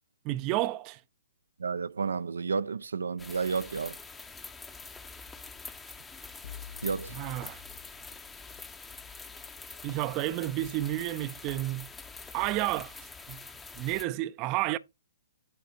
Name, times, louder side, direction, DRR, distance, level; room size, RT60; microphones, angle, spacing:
voice 1, 0.2-1.0 7.1-7.6 9.8-11.9 12.3-12.9 13.3-13.4 13.7-14.8, right 16 dB, 30° right, 0.5 m, -31 dB
voice 2, 1.6-4.0 6.8-7.2, right 5 dB, 80° right, 0.5 m, -31 dB
sound 1, 3.2-14.1, left 4 dB, 10° left, 0.8 m, -45 dB
sound 2, 6.4-8.6, left 7 dB, 60° left, 1.0 m, -48 dB
9.0 x 3.5 x 5.3 m
hypercardioid pair, 130°, 0 cm